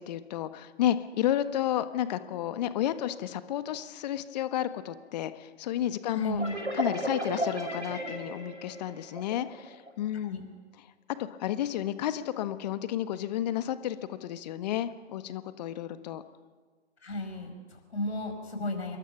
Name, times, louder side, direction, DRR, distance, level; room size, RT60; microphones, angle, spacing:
voice 1, 0.0-6.4 6.8-10.4 11.2-16.2, left 11 dB, 35° left, 12 dB, 1.4 m, -31 dB
voice 2, 6.1-6.6 10.2-10.4 17.0-19.0, left 1 dB, 65° left, 5 dB, 6.2 m, -34 dB
sound 1, 6.4-9.9, right 1 dB, 85° right, 5.2 m, -35 dB
28.5 x 22.5 x 6.2 m, 1.4 s
figure-of-eight pair, 120°, 35 cm